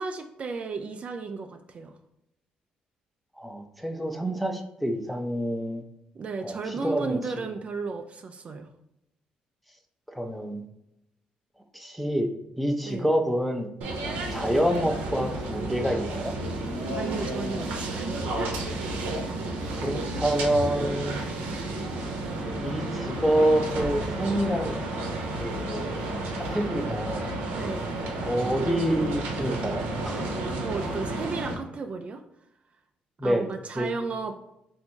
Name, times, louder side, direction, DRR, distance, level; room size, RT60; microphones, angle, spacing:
voice 1, 0.0-2.0 6.1-8.7 12.8-13.1 17.0-18.9 27.6-27.9 30.6-32.2 33.2-34.4, right 4 dB, 45° right, 6 dB, 0.4 m, -34 dB
voice 2, 3.4-5.8 6.4-7.2 10.2-10.6 11.7-12.3 12.6-13.7 14.3-16.4 19.7-21.2 22.6-24.8 25.4-27.3 28.2-30.3 33.2-33.5 33.8-33.9, right 1 dB, ahead, 5 dB, 0.6 m, -27 dB
sound 1, 13.8-31.5, right 2 dB, 90° right, 0.8 m, -31 dB
3.3 x 2.6 x 4.4 m, 0.84 s
cardioid pair, 80°, 3 cm